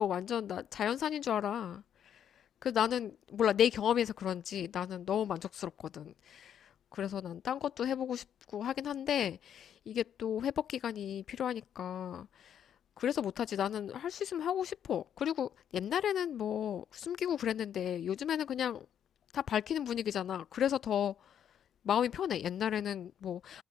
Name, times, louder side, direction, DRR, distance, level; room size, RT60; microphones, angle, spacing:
voice 1, 0.0-1.8 2.6-8.2 8.5-12.6 13.0-18.9 19.3-21.2 21.8-23.6, left 9 dB, 65° left, 3.6 m, -33 dB
cardioid pair, 90°, 0 cm